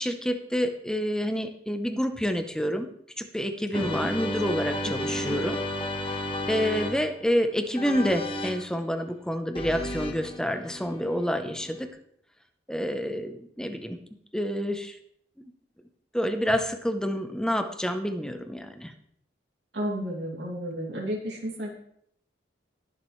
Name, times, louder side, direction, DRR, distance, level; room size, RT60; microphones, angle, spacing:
voice 1, 0.0-2.9 3.2-5.6 6.1-6.2 6.5-11.9 12.7-14.0 14.3-15.0 16.1-18.9, equal, 5° left, 7 dB, 0.8 m, -28 dB
sound 1, 3.7-7.3 7.7-8.7 9.5-11.9, left 1 dB, 30° left, 1.2 m, -33 dB
voice 2, 3.7-4.1 4.8-5.4 19.7-21.7, equal, 70° right, -2 dB, 2.5 m, -33 dB
20.0 x 7.5 x 3.2 m, 0.69 s
head